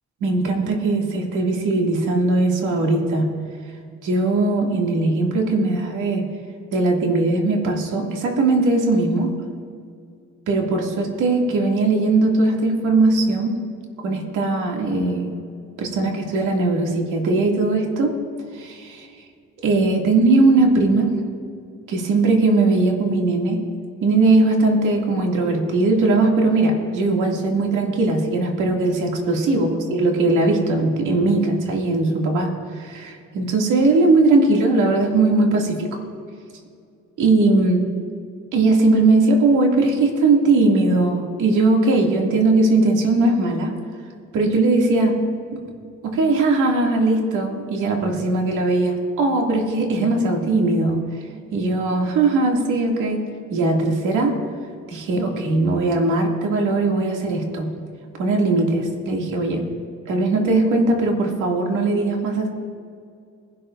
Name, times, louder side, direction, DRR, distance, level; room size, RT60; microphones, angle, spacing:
voice 1, 0.2-3.3 4.0-6.2 6.7-9.3 10.5-13.6 14.0-15.3 15.8-18.1 18.5-19.1 19.6-21.2 21.9-23.6 24.0-36.0 37.2-37.9 38.5-43.7 44.3-45.2 45.5-45.7 46.0-51.0 51.5-53.2 53.5-54.4 54.9-57.7 58.2-59.7 60.1-62.5, right 2 dB, 85° right, 0 dB, 2.4 m, -19 dB
21.5 x 12.0 x 2.6 m, 2.3 s
cardioid pair, 90°, 30 cm